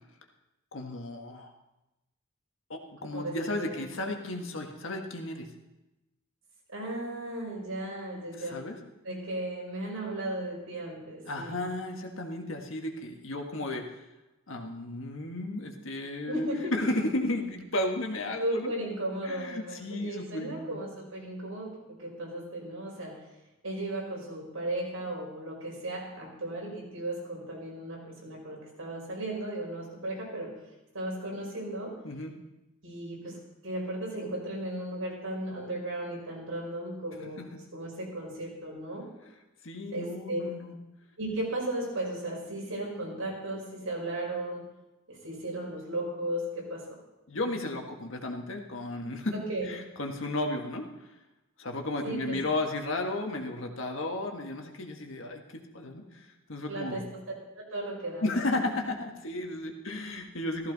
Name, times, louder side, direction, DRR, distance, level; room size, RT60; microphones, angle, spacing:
voice 1, 0.7-1.5 2.7-5.5 8.4-8.8 11.3-14.0 14.5-16.5 16.7-18.7 19.2-20.8 32.0-32.4 37.2-37.5 39.6-40.7 47.3-49.4 49.7-50.8 51.6-57.0 58.2-60.7, left 2 dB, 65° left, 3 dB, 1.6 m, -34 dB
voice 2, 3.1-3.8 6.7-8.6 9.0-11.6 16.3-16.7 18.4-23.2 23.6-30.6 30.9-32.0 32.8-37.4 37.7-39.1 39.9-40.4 41.2-44.6 45.1-47.0 49.3-49.7 52.0-52.4 56.7-57.2 57.6-58.6, right 1 dB, 85° right, -2 dB, 5.2 m, -35 dB
15.0 x 14.5 x 4.1 m, 0.98 s
head